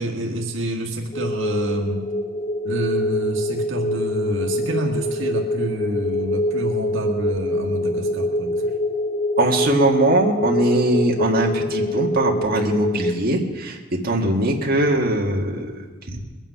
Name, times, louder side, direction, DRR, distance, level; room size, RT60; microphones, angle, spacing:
voice 1, 0.0-2.1 2.6-8.7, right 1 dB, 75° right, 1 dB, 1.6 m, -28 dB
sound 1, 1.1-13.1, left 1 dB, 35° left, 1.6 m, -24 dB
voice 2, 9.4-15.7 16.1-16.2, right 1 dB, 50° right, -1 dB, 1.8 m, -21 dB
21.5 x 9.0 x 5.7 m, 1.4 s
head